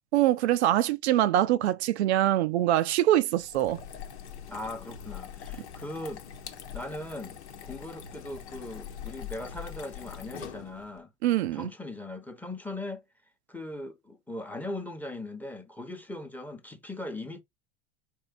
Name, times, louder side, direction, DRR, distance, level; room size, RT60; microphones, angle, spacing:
voice 1, 0.1-3.8 11.2-11.7, right 13 dB, 75° right, 0.5 m, -24 dB
sound 1, 3.4-11.0, left 9 dB, 75° left, 0.9 m, -43 dB
voice 2, 4.5-6.2 6.7-11.1 11.4-13.0 13.5-17.4, left 1 dB, 5° left, 0.8 m, -39 dB
4.5 x 3.0 x 2.5 m
hypercardioid pair, 85°, 34 cm